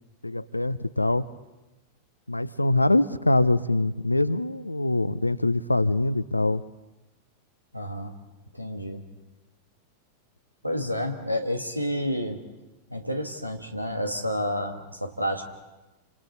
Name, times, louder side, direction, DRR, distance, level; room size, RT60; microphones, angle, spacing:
voice 1, 0.2-1.3 2.3-6.6, left 2 dB, 85° left, 16 dB, 0.6 m, -24 dB
voice 2, 7.7-8.1 8.5-9.0 10.6-12.4 12.9-15.4, equal, 90° right, 6 dB, 1.8 m, -30 dB
29.5 x 26.5 x 4.2 m, 1.1 s
figure-of-eight pair, 90°, 0 cm